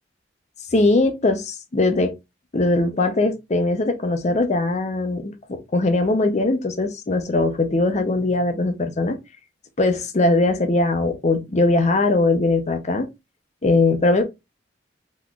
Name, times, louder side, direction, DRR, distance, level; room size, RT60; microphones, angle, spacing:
voice 1, 0.7-2.1 2.5-9.2 9.8-13.1 13.6-14.2, left 2 dB, 35° left, 0.6 m, -20 dB
3.7 x 3.0 x 2.3 m
head